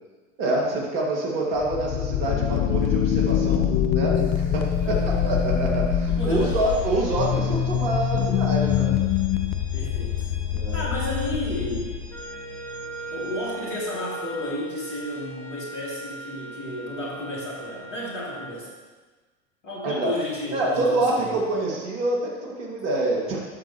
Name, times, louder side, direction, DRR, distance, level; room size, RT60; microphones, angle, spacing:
voice 1, 0.4-9.0 10.5-10.8 19.8-20.1 20.5-23.4, right 2 dB, 50° right, -3 dB, 2.0 m, -26 dB
sound 1, 1.6-12.2, left 9 dB, 30° left, 0.3 m, -24 dB
sound 2, 4.2-15.0, right 2 dB, 80° right, 2.0 m, -42 dB
voice 2, 4.8-5.2 6.1-6.7 9.7-10.3 10.7-11.9 13.1-18.7 19.6-21.4, left 1 dB, 75° left, -4 dB, 2.8 m, -33 dB
Wind instrument woodwind instrument, 12.1-18.6, right 2 dB, 5° left, 0.8 m, -38 dB
12.0 x 6.5 x 3.0 m, 1.3 s
figure-of-eight pair, 85°, 38 cm